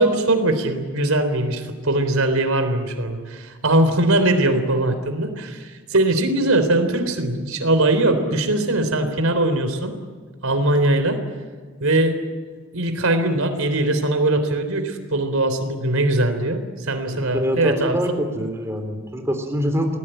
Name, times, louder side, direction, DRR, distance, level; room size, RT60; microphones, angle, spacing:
voice 1, 0.0-9.9 10.4-11.2 11.8-12.2 12.7-18.0, right 1 dB, 80° right, 8 dB, 3.6 m, -21 dB
voice 2, 17.1-20.0, equal, 10° right, 5 dB, 3.5 m, -25 dB
30.0 x 20.0 x 9.1 m, 1.5 s
head